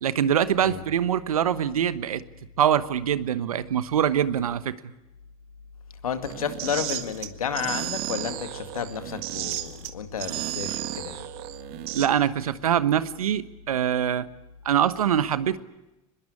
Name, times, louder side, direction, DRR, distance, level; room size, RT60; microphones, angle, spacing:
voice 1, 0.0-2.2 2.6-4.8 11.9-14.3 14.6-15.6, right 9 dB, 85° right, 15 dB, 1.1 m, -24 dB
voice 2, 6.0-11.3, left 7 dB, 90° left, 8 dB, 2.1 m, -32 dB
sound 1, 6.2-12.1, right 15 dB, 65° right, 1.8 m, -33 dB
24.5 x 21.5 x 8.5 m, 0.96 s
hypercardioid pair, 75°, 18 cm